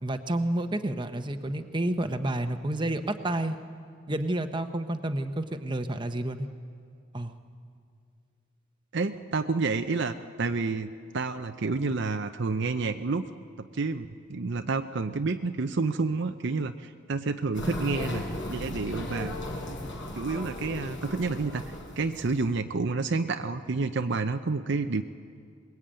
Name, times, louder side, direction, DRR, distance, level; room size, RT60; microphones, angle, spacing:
voice 1, 0.0-3.6 4.1-6.5 7.1-7.4, right 1 dB, 20° right, 7 dB, 0.9 m, -30 dB
voice 2, 8.9-13.3 13.6-18.2 18.5-19.4 20.1-25.0, right 3 dB, 55° right, 8 dB, 0.6 m, -29 dB
sound 1, 17.5-22.6, left 1 dB, 65° left, 4.6 m, -36 dB
22.5 x 21.0 x 8.9 m, 2.3 s
head